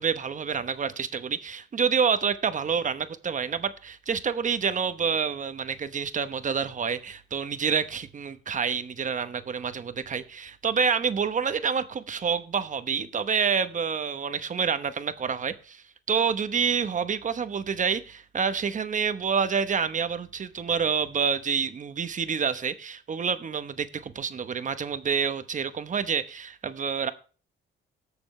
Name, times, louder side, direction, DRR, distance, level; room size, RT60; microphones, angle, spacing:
voice 1, 0.0-27.1, right 6 dB, 40° right, 1.0 m, -28 dB
18.5 x 7.0 x 3.2 m
cardioid pair, 90°, 20 cm